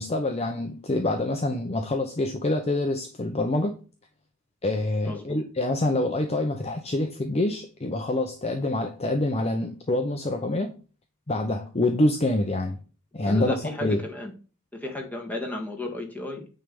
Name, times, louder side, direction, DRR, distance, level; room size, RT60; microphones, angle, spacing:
voice 1, 0.0-3.8 4.6-10.8 11.3-12.8 13.1-14.0, left 2 dB, 30° left, 0.7 m, -26 dB
voice 2, 5.1-5.4 13.2-14.3 14.7-16.5, left 2 dB, 5° left, 1.7 m, -34 dB
9.1 x 3.4 x 5.3 m
head